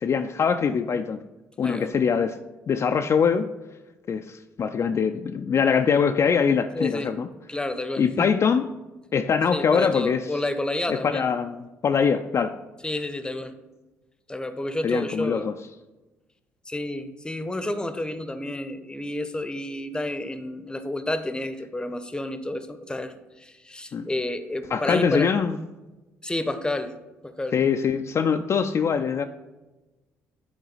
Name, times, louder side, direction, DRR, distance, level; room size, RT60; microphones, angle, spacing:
voice 1, 0.0-1.2 1.6-2.4 2.7-3.5 4.1-7.3 8.0-8.7 9.1-10.4 10.9-12.6 14.8-15.5 23.9-24.1 24.7-25.5 27.5-29.2, left 6 dB, 45° left, 6 dB, 0.4 m, -23 dB
voice 2, 6.7-7.1 7.5-8.3 9.5-11.3 12.8-13.6 14.3-15.5 16.7-25.3 26.2-26.9 27.2-27.6, left 1 dB, 10° left, 10 dB, 0.7 m, -30 dB
9.3 x 4.0 x 4.0 m, 1.1 s
hypercardioid pair, 55°, 7 cm